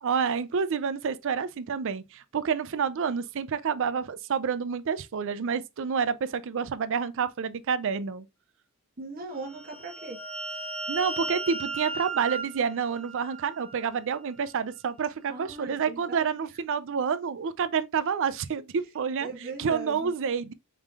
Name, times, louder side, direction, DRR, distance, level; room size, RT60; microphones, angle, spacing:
voice 1, 0.0-8.3 10.9-19.3 19.6-20.5, right 6 dB, 60° right, 0.4 m, -28 dB
voice 2, 9.0-10.2 10.5-10.6 15.3-16.3 19.2-20.1, right 3 dB, 40° right, 1.0 m, -39 dB
sound 1, 9.5-13.9, right 3 dB, 5° left, 0.4 m, -36 dB
4.9 x 3.7 x 2.3 m
head